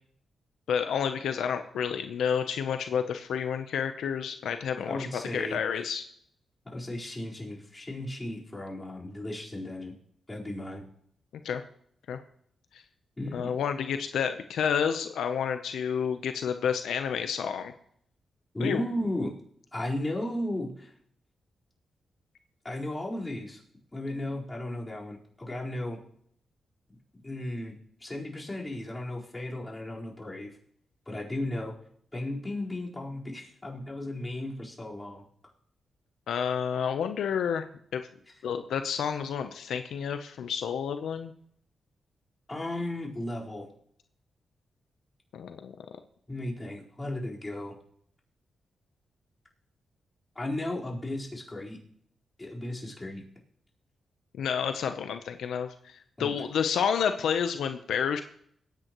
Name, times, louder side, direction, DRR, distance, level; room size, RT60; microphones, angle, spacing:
voice 1, 0.7-6.0 11.4-11.6 12.1-12.2 12.7-12.8 13.3-17.7 18.6-18.8 36.3-37.6 37.9-38.0 38.4-41.3 45.3-45.7 54.3-58.2, left 7 dB, 85° left, 8 dB, 0.8 m, -30 dB
voice 2, 4.9-5.8 6.7-9.9 10.3-10.8 13.2-13.5 18.5-19.3 19.7-20.9 22.6-23.6 23.9-26.0 26.9-27.7 28.0-30.5 31.1-31.7 32.1-35.2 42.5-43.7 46.3-47.7 50.3-51.8 52.4-53.2 56.2-56.4, left 1 dB, 20° left, -4 dB, 4.4 m, -35 dB
21.5 x 9.3 x 3.1 m, 0.65 s
cardioid pair, 70°, 0 cm